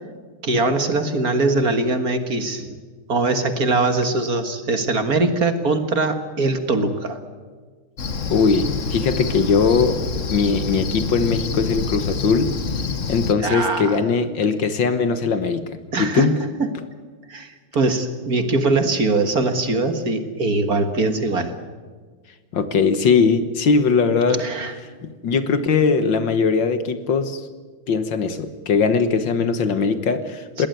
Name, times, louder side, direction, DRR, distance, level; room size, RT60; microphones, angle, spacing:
voice 1, 0.4-2.7 3.1-7.2 13.4-14.0 15.9-16.3 16.6-16.7 17.3-21.5 24.3-24.7 30.6-30.7, right 3 dB, 45° right, 8 dB, 2.0 m, -21 dB
Cricket, 8.0-13.3, left 4 dB, 40° left, 1.5 m, -27 dB
voice 2, 8.3-10.0 10.3-12.5 13.1-15.7 16.0-16.4 22.5-24.5 25.0-27.5 27.9-30.7, left 5 dB, 60° left, 11 dB, 1.9 m, -20 dB
21.0 x 18.5 x 9.3 m, 1.5 s
omnidirectional pair, 2.4 m